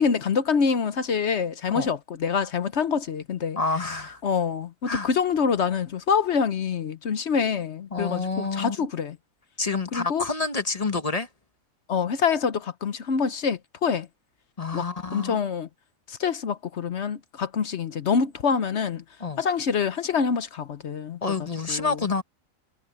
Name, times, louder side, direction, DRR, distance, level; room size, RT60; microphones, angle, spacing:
voice 1, 0.0-3.6 4.2-9.2 9.9-10.2 11.9-14.1 14.7-15.7 16.1-19.0 19.4-22.0, left 6 dB, 55° left, 1.1 m, -26 dB
voice 2, 3.6-4.2 4.9-5.1 7.9-8.8 9.6-11.3 14.6-15.4 19.2-19.4 21.2-22.2, left 4 dB, 30° left, 1.0 m, -28 dB
omnidirectional pair, 1.4 m